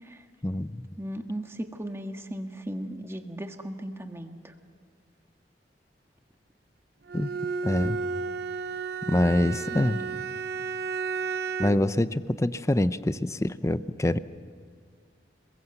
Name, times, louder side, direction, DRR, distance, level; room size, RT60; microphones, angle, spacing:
voice 1, 0.4-0.9 7.1-7.3 7.6-8.0 9.1-10.0 11.6-14.2, left 1 dB, 15° left, 14 dB, 0.6 m, -25 dB
voice 2, 1.0-4.5 9.7-10.1, right 1 dB, 15° right, 5 dB, 1.5 m, -37 dB
Bowed string instrument, 7.1-11.9, right 5 dB, 65° right, 0.7 m, -32 dB
28.5 x 21.5 x 8.1 m, 2.1 s
head